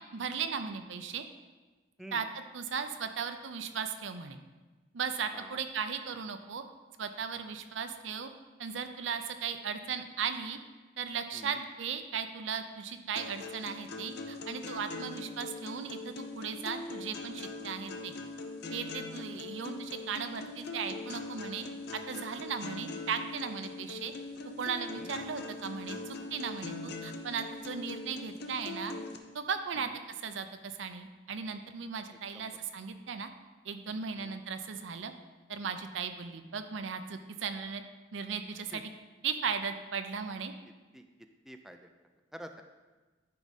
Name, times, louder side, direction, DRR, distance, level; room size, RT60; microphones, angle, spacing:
voice 1, 0.1-1.3 2.1-4.4 4.9-6.6 7.0-8.3 8.6-10.6 11.0-18.1 18.7-21.7 21.9-24.1 24.6-28.9 29.3-33.3 33.6-35.1 35.5-37.8 38.1-38.9 39.2-40.5, right 6 dB, 70° right, 8 dB, 0.6 m, -37 dB
sound 1, 13.2-29.2, left 3 dB, 60° left, 0.8 m, -42 dB
voice 2, 25.0-25.3 29.8-29.9 32.3-32.5 34.2-34.4 38.7-38.8 40.9-41.0 41.5-41.9 42.3-42.6, equal, ahead, 5 dB, 0.4 m, -48 dB
11.0 x 4.8 x 4.1 m, 1.2 s
head